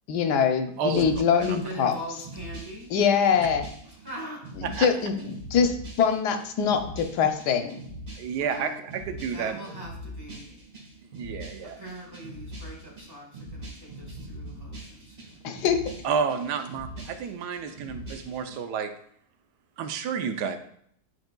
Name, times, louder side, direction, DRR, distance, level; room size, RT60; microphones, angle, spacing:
voice 1, 0.1-1.9 2.9-3.7 4.6-7.8 15.4-15.8, left 7 dB, 85° left, 6 dB, 1.3 m, -24 dB
sound 1, 0.8-18.6, right 1 dB, 35° right, 1.7 m, -43 dB
voice 2, 0.8-1.1 1.4-1.6 4.6-4.9 8.2-9.6 11.2-11.8 16.0-18.9 19.8-20.6, right 6 dB, 85° right, 7 dB, 1.2 m, -30 dB
voice 3, 1.6-2.9 3.8-4.5 8.3-8.8 9.3-10.6 11.6-15.3, equal, 15° right, -2 dB, 1.4 m, -42 dB
9.4 x 4.6 x 2.2 m, 0.67 s
omnidirectional pair, 1.7 m